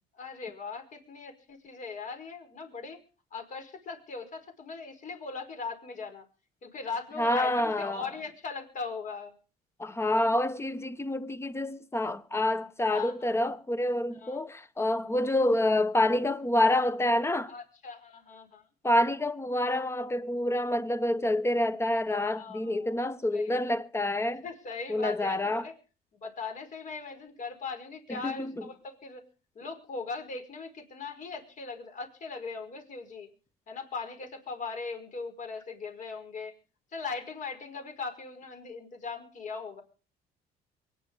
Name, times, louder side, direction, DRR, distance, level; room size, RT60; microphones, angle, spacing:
voice 1, 0.2-3.0 3.3-6.3 6.6-9.3 12.9-13.3 14.1-14.4 17.5-18.6 22.2-23.0 23.3-23.6 24.3-25.7 26.2-29.2 29.6-33.3 33.7-36.5 36.9-39.8, left 4 dB, 50° left, 5.1 m, -39 dB
voice 2, 7.2-8.0 9.8-17.5 18.8-24.4 24.9-25.7 28.1-28.6, left 1 dB, 15° left, 1.2 m, -27 dB
23.5 x 9.9 x 5.4 m
cardioid pair, 110°, 17 cm